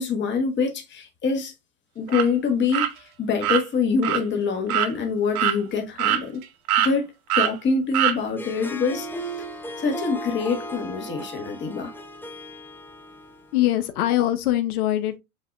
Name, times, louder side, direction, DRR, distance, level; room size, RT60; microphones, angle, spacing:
voice 1, 0.0-1.5 1.9-6.4 6.8-9.1 9.3-9.4 9.8-11.9, left 4 dB, 25° left, 1.4 m, -25 dB
sound 1, 2.1-2.3 2.7-2.9 3.4-3.6 4.0-4.2 4.7-4.9 5.4-5.6 6.0-6.4 6.7-6.9 7.3-7.5 7.9-8.2, right 12 dB, 75° right, 1.0 m, -22 dB
Harp, 8.2-13.7, right 1 dB, 5° left, 0.6 m, -36 dB
voice 2, 13.5-15.2, left 14 dB, 75° left, 0.9 m, -22 dB
7.6 x 2.7 x 2.4 m
hypercardioid pair, 115°, 44 cm